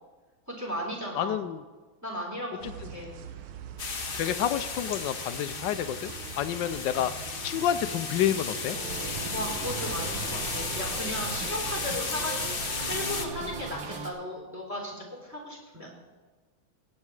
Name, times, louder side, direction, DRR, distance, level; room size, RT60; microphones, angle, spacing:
voice 1, 0.5-1.4 2.0-3.1 9.3-15.9, equal, 5° right, 0 dB, 3.3 m, -36 dB
voice 2, 1.1-1.6 2.8-2.9 4.2-7.1 7.4-8.8, left 10 dB, 75° left, 12 dB, 1.1 m, -29 dB
sound 1, 2.6-14.0, right 7 dB, 85° right, 1.8 m, -43 dB
sound 2, 3.8-13.3, left 4 dB, 40° left, 0.8 m, -35 dB
sound 3, 8.7-14.1, right 3 dB, 65° right, 2.1 m, -38 dB
17.5 x 8.6 x 4.8 m, 1.3 s
omnidirectional pair, 2.4 m